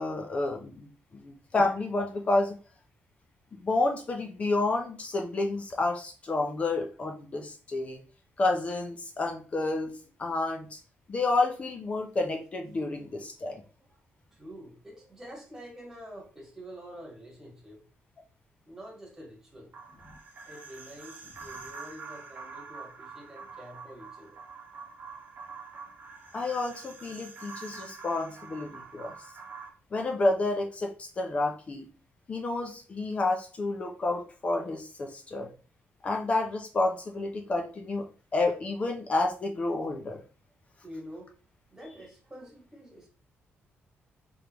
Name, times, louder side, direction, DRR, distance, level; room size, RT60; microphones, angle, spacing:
voice 1, 0.0-2.6 3.6-8.0 8.4-9.9 10.2-10.8 11.1-13.6 26.3-29.1 29.9-31.9 32.3-35.5 36.0-38.1 38.3-40.2, left 2 dB, 30° left, 3 dB, 0.5 m, -30 dB
voice 2, 14.3-17.8 18.6-19.7 20.5-24.4 40.8-41.4 41.7-43.1, equal, 10° right, -2 dB, 1.4 m, -47 dB
sound 1, 19.7-29.7, right 5 dB, 45° right, 0.6 m, -46 dB
3.7 x 3.4 x 2.9 m, 0.37 s
wide cardioid pair, 165°, 4 cm